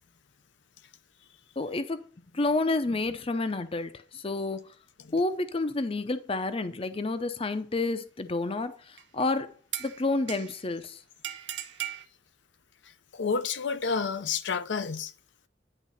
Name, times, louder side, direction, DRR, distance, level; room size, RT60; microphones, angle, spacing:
voice 1, 1.6-2.1 2.3-4.6 5.1-9.5 9.8-11.0, left 2 dB, 30° left, 0.6 m, -29 dB
sound 1, 9.0-9.2 9.7-10.7 11.2-12.1, right 11 dB, 80° right, 0.7 m, -37 dB
voice 2, 13.1-15.1, left 5 dB, 90° left, 0.7 m, -30 dB
10.0 x 3.6 x 5.6 m
head